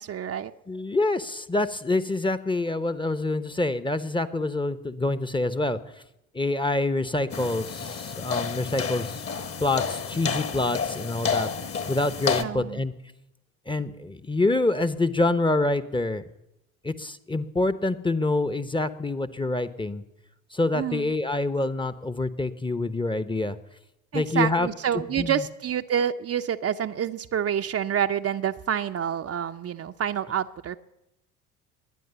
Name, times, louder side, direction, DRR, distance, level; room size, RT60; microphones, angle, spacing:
voice 1, 0.0-0.5 12.4-12.8 20.7-21.1 24.1-30.8, right 9 dB, 35° right, 7 dB, 0.7 m, -28 dB
voice 2, 0.7-5.8 6.3-9.2 9.6-11.5 11.9-12.9 13.7-16.2 16.8-20.0 20.5-23.6 24.1-24.7 25.2-25.4, left 2 dB, 10° left, 13 dB, 0.9 m, -26 dB
sound 1, 7.3-12.4, left 6 dB, 30° left, 1.4 m, -30 dB
21.5 x 9.4 x 6.9 m, 0.87 s
figure-of-eight pair, 55°, 42 cm